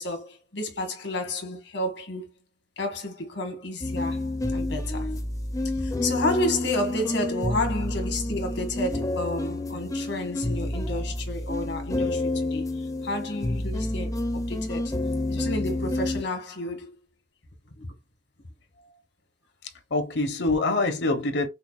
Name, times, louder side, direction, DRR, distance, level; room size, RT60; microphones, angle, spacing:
voice 1, 0.0-2.3 2.8-5.1 5.8-14.9 15.3-17.0 17.8-17.9, left 1 dB, 85° left, 1.5 m, -31 dB
sound 1, 3.8-16.2, left 1 dB, 20° left, 0.5 m, -29 dB
voice 2, 19.6-21.5, left 2 dB, 65° left, 0.8 m, -25 dB
5.6 x 2.2 x 2.3 m
head